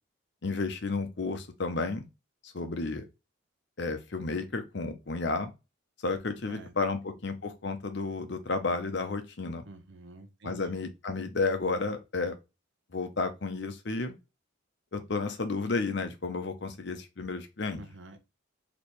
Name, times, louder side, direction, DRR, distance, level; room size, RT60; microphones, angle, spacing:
voice 1, 0.4-2.0 2.4-3.0 3.8-5.5 6.0-9.6 10.4-12.4 12.9-14.2 14.9-17.8, left 3 dB, 55° left, 0.7 m, -32 dB
voice 2, 6.5-7.0 9.7-10.8 17.8-18.3, right 1 dB, 60° right, 0.8 m, -48 dB
3.2 x 3.0 x 4.3 m
head